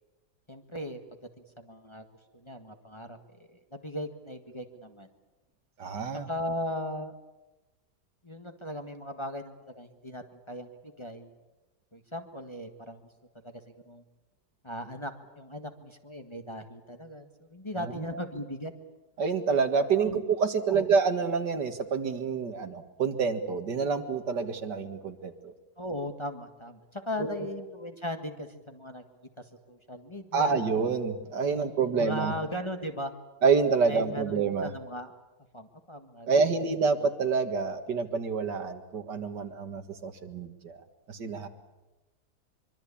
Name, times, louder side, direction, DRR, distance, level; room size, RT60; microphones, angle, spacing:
voice 1, 0.5-1.0 1.4-2.0 2.3-3.2 3.5-5.1 6.3-7.1 8.2-11.3 11.9-13.0 13.4-14.0 14.6-18.7 20.0-20.2 20.7-20.9 25.8-29.0 29.4-30.7 31.4-33.1 33.8-35.1 35.5-36.4, left 1 dB, 15° left, 5 dB, 1.7 m, -38 dB
voice 2, 5.8-6.3 18.0-18.2 19.2-25.5 27.2-27.5 30.3-32.3 33.4-34.7 36.3-40.8 41.1-41.5, right 5 dB, 85° right, 8 dB, 2.4 m, -27 dB
24.0 x 24.0 x 8.6 m, 1.1 s
omnidirectional pair, 1.8 m